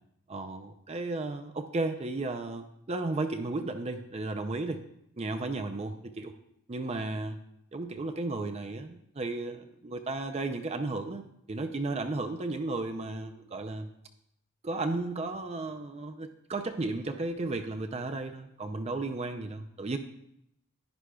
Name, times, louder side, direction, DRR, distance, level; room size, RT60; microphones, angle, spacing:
voice 1, 0.3-4.8 5.2-6.3 6.7-7.4 7.7-13.9 14.6-20.0, right 2 dB, 30° right, 6 dB, 0.4 m, -34 dB
11.0 x 10.0 x 2.3 m, 0.78 s
head